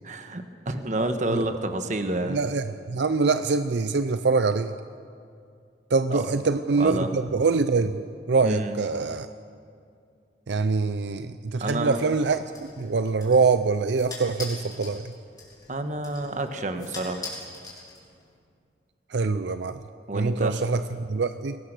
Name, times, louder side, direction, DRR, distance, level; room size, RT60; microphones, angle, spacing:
voice 1, 0.0-2.4 6.1-6.3 6.8-7.1 8.4-8.8 11.6-12.0 15.7-17.3 20.1-20.6, right 1 dB, 45° right, 7 dB, 1.3 m, -29 dB
voice 2, 2.3-4.7 5.9-9.3 10.5-15.1 19.1-19.8 20.1-21.6, right 4 dB, 80° right, 11 dB, 0.6 m, -24 dB
sound 1, 11.9-18.4, left 3 dB, 20° left, 4.2 m, -43 dB
22.0 x 17.5 x 6.7 m, 2.3 s
head